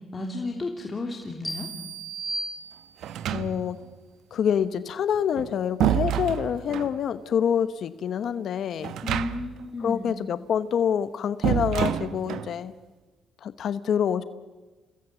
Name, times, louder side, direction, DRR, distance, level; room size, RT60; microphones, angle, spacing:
voice 1, 0.1-1.7 9.0-10.1, left 2 dB, 30° left, 1 dB, 3.1 m, -33 dB
sound 1, 1.4-3.3, right 2 dB, 10° left, 4.9 m, -35 dB
sound 2, 3.0-3.9 5.1-7.0 8.8-9.6 9.9-10.0 11.4-12.5, right 10 dB, 80° right, 1.0 m, -28 dB
voice 2, 3.3-3.8 4.3-8.9 9.8-12.7 13.4-14.3, left 8 dB, 65° left, 13 dB, 0.9 m, -26 dB
30.0 x 19.5 x 8.1 m, 1.2 s
cardioid pair, 90°, 0 cm